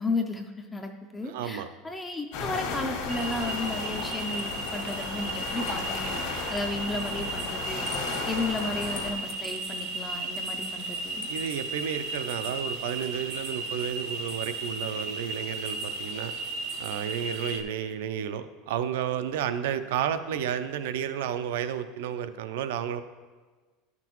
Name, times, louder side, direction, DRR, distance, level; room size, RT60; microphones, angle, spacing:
voice 1, 0.0-6.2 6.5-7.9 8.3-11.3, left 2 dB, 10° left, 4 dB, 0.4 m, -33 dB
voice 2, 1.2-1.7 11.3-16.3 16.8-23.0, right 9 dB, 80° right, 10 dB, 0.5 m, -32 dB
sound 1, 2.3-9.1, left 4 dB, 65° left, 1.4 m, -34 dB
sound 2, 3.1-17.6, right 2 dB, 50° right, 0.7 m, -35 dB
sound 3, 4.0-12.8, left 8 dB, 85° left, 0.8 m, -51 dB
11.0 x 5.9 x 3.0 m, 1.3 s
supercardioid pair, 170°, 0 cm